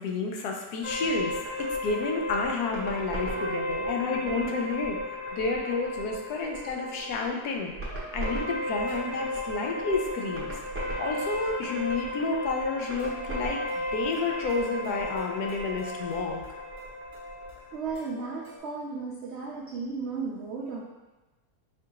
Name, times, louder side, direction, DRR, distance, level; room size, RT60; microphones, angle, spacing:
voice 1, 0.0-7.7 8.1-10.6 11.0-16.4, left 4 dB, 75° left, 2 dB, 1.1 m, -30 dB
sound 1, 0.8-17.9, left 1 dB, 10° right, 0.8 m, -34 dB
sound 2, 3.1-18.6, right 1 dB, 55° left, 1.6 m, -48 dB
voice 2, 17.7-20.8, right 4 dB, 80° right, -2 dB, 0.6 m, -34 dB
4.6 x 2.4 x 4.6 m, 1.1 s
omnidirectional pair, 1.7 m